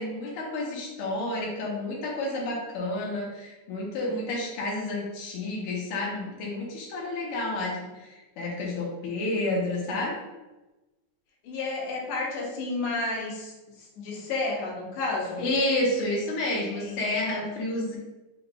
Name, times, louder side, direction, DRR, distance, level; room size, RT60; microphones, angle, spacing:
voice 1, 0.0-10.1 15.4-18.0, left 2 dB, 90° left, -3 dB, 1.2 m, -30 dB
voice 2, 11.4-13.5 14.0-15.5 16.7-17.0, left 3 dB, 70° left, -3 dB, 1.8 m, -31 dB
5.0 x 4.2 x 2.2 m, 1.1 s
omnidirectional pair, 4.0 m